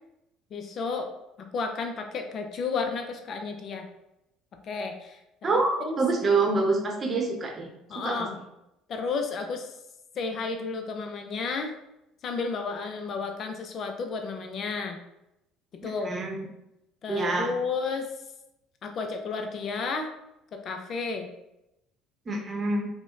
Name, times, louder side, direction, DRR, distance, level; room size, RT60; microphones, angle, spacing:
voice 1, 0.5-1.1 1.4-3.9 4.6-6.0 7.9-8.4 8.9-9.8 10.2-11.7 12.2-15.0 15.8-16.1 17.0-18.1 18.8-20.1 20.5-21.3, left 4 dB, 50° left, 5 dB, 0.4 m, -32 dB
voice 2, 5.4-7.7 7.9-8.3 15.8-16.5 17.1-17.5 22.3-22.9, right 3 dB, 35° right, 1 dB, 0.8 m, -26 dB
4.8 x 2.1 x 2.4 m, 0.87 s
hypercardioid pair, 60°, 0 cm